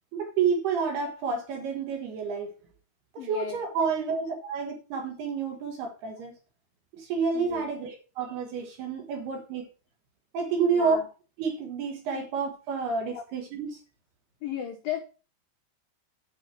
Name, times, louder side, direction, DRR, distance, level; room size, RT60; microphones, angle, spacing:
voice 1, 0.1-2.5 3.3-6.3 6.9-9.7 10.3-11.0 11.4-13.7, right 5 dB, 65° right, 3.0 m, -29 dB
voice 2, 3.2-3.6 7.3-7.7 10.6-11.1 12.1-12.2 13.1-13.2 14.4-15.0, left 10 dB, 85° left, 2.0 m, -35 dB
8.7 x 6.3 x 5.8 m
omnidirectional pair, 5.7 m